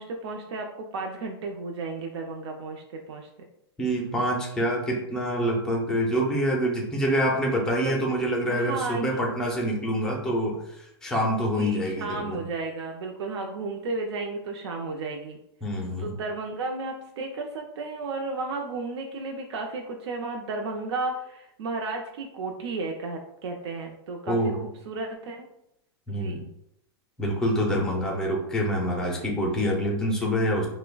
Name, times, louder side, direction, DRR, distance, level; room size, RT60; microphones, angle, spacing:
voice 1, 0.0-3.3 7.8-8.0 8.5-9.3 11.6-15.4 16.0-24.5 24.9-25.4 26.1-26.5 27.8-28.2, right 3 dB, 85° right, 2 dB, 0.5 m, -33 dB
voice 2, 3.8-10.6 11.0-12.4 15.6-16.2 24.2-24.6 26.1-26.4 27.2-30.7, equal, 5° left, -1 dB, 0.4 m, -26 dB
5.6 x 2.1 x 2.2 m, 0.80 s
supercardioid pair, 175°, 14 cm